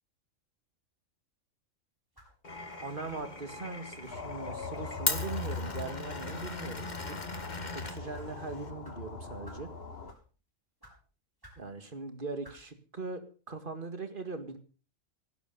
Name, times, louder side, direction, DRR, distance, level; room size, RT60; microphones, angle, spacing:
sound 1, 2.1-2.4 3.1-3.3 4.1-4.2 4.8-5.0 5.6-5.8 6.4-6.6 7.2-7.5 8.1-8.3 8.8-9.0 9.4-9.7 10.0-10.3 10.8-11.0 11.4-11.6 12.4-12.6, right 1 dB, 15° right, 5.8 m, -54 dB
Glass, 2.4-8.7, left 3 dB, 35° left, 1.8 m, -39 dB
voice 1, 2.8-6.9 7.7-9.7 11.6-14.6, right 3 dB, 40° right, 9 dB, 2.3 m, -40 dB
sound 2, 4.1-10.1, left 4 dB, 50° left, 1.6 m, -41 dB
17.0 x 12.0 x 5.5 m, 0.38 s
omnidirectional pair, 1.3 m